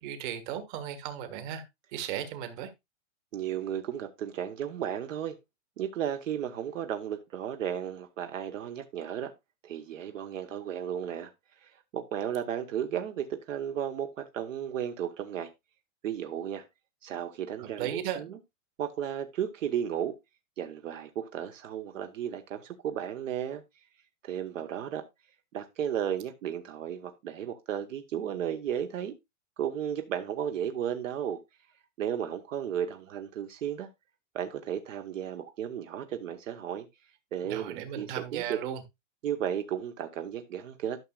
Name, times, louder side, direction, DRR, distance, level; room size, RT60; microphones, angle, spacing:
voice 1, 0.0-1.6 1.9-2.7 17.6-18.2 37.4-38.8, right 10 dB, 40° right, 1.6 m, -36 dB
voice 2, 3.3-5.4 5.8-9.3 9.6-11.3 11.6-15.5 16.0-16.6 17.0-18.4 18.8-20.1 20.6-23.6 24.2-25.0 25.5-29.1 29.6-31.4 32.0-33.9 34.3-36.9 37.3-38.6 39.2-41.0, right 9 dB, 70° right, 1.1 m, -34 dB
12.5 x 6.3 x 2.3 m
hypercardioid pair, 150°, 40 cm